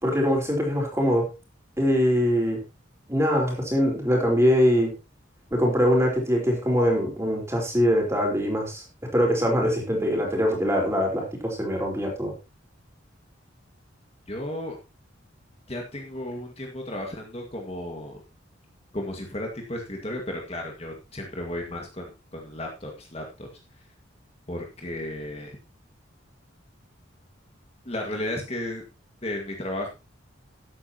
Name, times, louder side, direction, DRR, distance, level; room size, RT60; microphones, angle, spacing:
voice 1, 0.0-1.3 1.8-2.6 3.1-4.9 5.5-8.8 9.1-12.3, equal, 15° right, 0 dB, 4.4 m, -23 dB
voice 2, 14.3-14.8 15.7-18.2 18.9-23.5 24.5-25.6 27.9-28.8 29.2-29.9, left 1 dB, 30° left, 1 dB, 1.9 m, -34 dB
13.5 x 11.5 x 3.0 m, 0.27 s
head